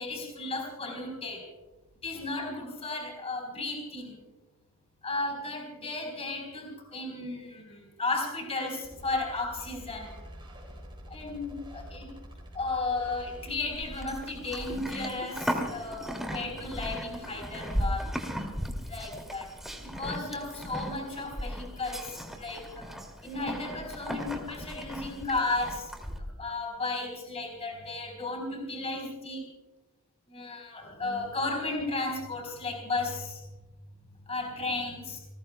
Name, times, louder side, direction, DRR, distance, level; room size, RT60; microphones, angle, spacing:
voice 1, 0.0-1.4 2.0-4.1 5.0-10.1 11.1-12.1 12.5-18.1 18.9-19.5 19.9-22.9 23.2-25.9 26.4-29.4 30.3-33.4 34.3-35.2, left 3 dB, 30° left, 2 dB, 4.0 m, -34 dB
sound 1, 8.8-14.8, equal, 25° right, 5.6 m, -47 dB
Livestock farm animals working animals, 13.7-26.2, equal, ahead, 2.3 m, -37 dB
29.5 x 19.5 x 2.2 m, 1.1 s
head